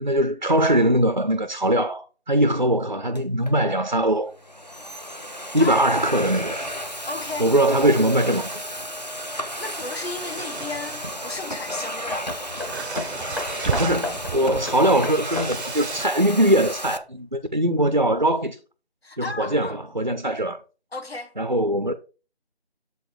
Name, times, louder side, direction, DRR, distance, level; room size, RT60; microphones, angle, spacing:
voice 1, 0.0-4.3 5.5-6.6 7.4-8.6 13.6-18.6 19.2-20.6 21.4-21.9, right 1 dB, 45° right, 0.4 m, -21 dB
Domestic sounds home sounds, 3.1-3.5 4.3-17.0, equal, 40° left, 0.5 m, -33 dB
sound 1, 6.0-16.1, right 6 dB, 90° right, 0.6 m, -37 dB
voice 2, 7.0-7.5 9.6-12.3 19.0-19.8 20.9-21.3, left 3 dB, 70° left, 1.2 m, -33 dB
Hammer, 12.3-17.0 17.8-17.9, left 1 dB, ahead, 0.7 m, -35 dB
7.2 x 4.0 x 4.6 m
figure-of-eight pair, 180°, 32 cm